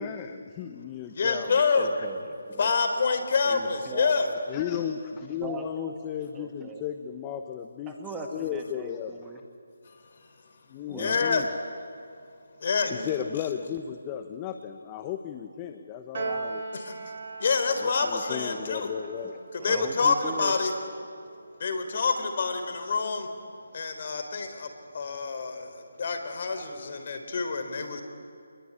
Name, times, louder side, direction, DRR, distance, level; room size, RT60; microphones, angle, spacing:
voice 1, 0.0-1.5 4.5-7.9 8.3-9.3 10.7-11.5 12.9-16.6 17.8-19.4, left 9 dB, 20° left, 7 dB, 1.1 m, -35 dB
voice 2, 1.1-1.9 2.6-4.3 9.9-10.0 10.8-11.4 12.6-13.1 16.7-16.9 17.4-18.9 19.5-20.7 21.6-23.3 23.7-24.7 24.9-28.0, left 5 dB, 45° left, 7 dB, 4.0 m, -27 dB
voice 3, 1.7-2.8 3.4-4.3 5.4-6.0 6.3-6.8 7.9-9.4 10.9-11.3 19.2-19.3 19.6-20.6, right 4 dB, 10° right, 3 dB, 1.9 m, -39 dB
Piano, 16.1-22.7, right 4 dB, 45° right, 4.3 m, -40 dB
26.5 x 21.5 x 9.9 m, 2.3 s
figure-of-eight pair, 155°, 0 cm